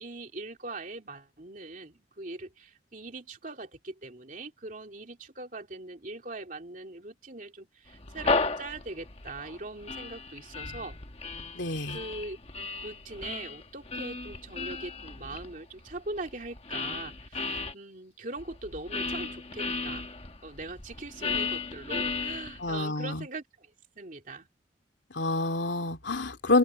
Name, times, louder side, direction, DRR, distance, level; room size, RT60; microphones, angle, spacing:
voice 1, 0.0-11.0 11.9-12.4 12.8-20.1 20.4-24.5, right 2 dB, 45° right, 3.1 m, -41 dB
sound 1, 7.9-17.7 18.4-22.8, left 4 dB, 35° left, 1.3 m, -35 dB
voice 2, 11.5-12.0 22.6-23.2 25.1-26.6, left 2 dB, 75° left, 2.8 m, -27 dB
open air
head